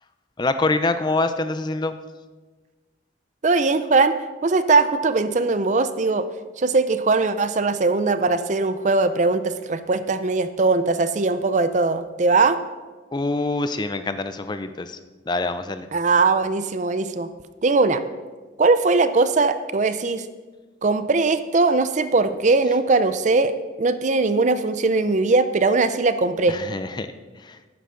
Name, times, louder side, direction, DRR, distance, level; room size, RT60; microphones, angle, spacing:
voice 1, 0.4-2.0 13.1-15.0 15.3-15.9 26.5-27.1 27.4-27.6, left 2 dB, 20° left, 10 dB, 0.4 m, -25 dB
voice 2, 3.4-4.2 4.4-6.3 6.6-12.6 15.9-17.3 17.6-18.0 18.6-20.3 20.8-23.5 23.8-26.6, right 3 dB, 40° right, 12 dB, 0.5 m, -20 dB
12.5 x 9.5 x 3.8 m, 1.3 s
head